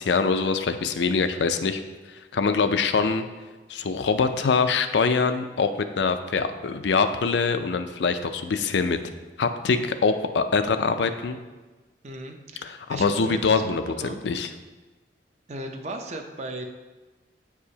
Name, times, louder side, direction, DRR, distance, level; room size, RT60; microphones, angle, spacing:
voice 1, 0.0-1.8 2.3-3.2 3.7-9.0 9.4-11.4 12.6-13.9 14.2-14.5, left 4 dB, 80° left, 9 dB, 0.4 m, -24 dB
voice 2, 12.0-14.2 15.5-16.6, right 1 dB, 40° right, 4 dB, 0.6 m, -36 dB
8.8 x 4.8 x 2.8 m, 1.2 s
head